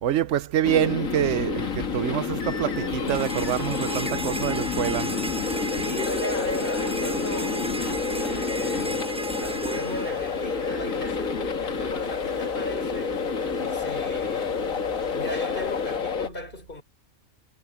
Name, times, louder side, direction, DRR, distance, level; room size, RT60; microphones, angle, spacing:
voice 1, 0.0-5.1, right 11 dB, 65° right, 0.9 m, -26 dB
sound 1, 0.6-16.3, left 5 dB, 70° left, 2.0 m, -29 dB
sound 2, 1.6-16.0, left 5 dB, 55° left, 2.6 m, -42 dB
sound 3, 3.1-11.1, right 1 dB, 5° right, 0.5 m, -34 dB
voice 2, 5.7-7.7 8.2-13.2 13.7-14.7 15.1-16.8, left 1 dB, 35° left, 4.7 m, -36 dB
omnidirectional pair, 1.5 m